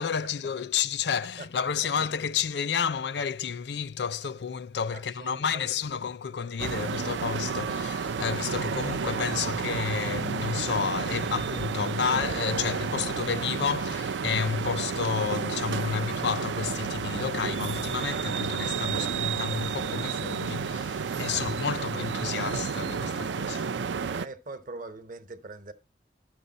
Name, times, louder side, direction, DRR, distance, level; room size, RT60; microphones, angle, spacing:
voice 1, 0.0-23.7, left 7 dB, 65° left, 0.5 m, -31 dB
voice 2, 1.4-1.9 4.9-5.9 21.6-22.4 24.1-25.7, right 2 dB, 45° right, 1.0 m, -43 dB
sound 1, 6.6-24.3, right 6 dB, 80° right, 0.4 m, -31 dB
12.0 x 6.9 x 4.0 m
head